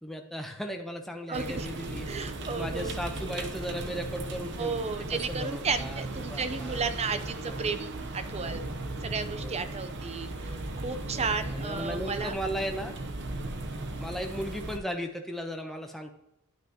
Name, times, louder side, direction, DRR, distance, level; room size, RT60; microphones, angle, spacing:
voice 1, 0.0-4.8 5.1-6.9 7.4-7.8 9.4-9.8 11.1-13.0 14.0-16.1, equal, ahead, 3 dB, 0.8 m, -37 dB
voice 2, 1.3-1.7 2.1-3.0 4.6-8.6 9.0-12.3, right 4 dB, 30° right, 10 dB, 0.6 m, -33 dB
sound 1, 1.3-14.8, right 2 dB, 55° right, 0.9 m, -37 dB
11.5 x 6.0 x 2.9 m, 0.82 s
head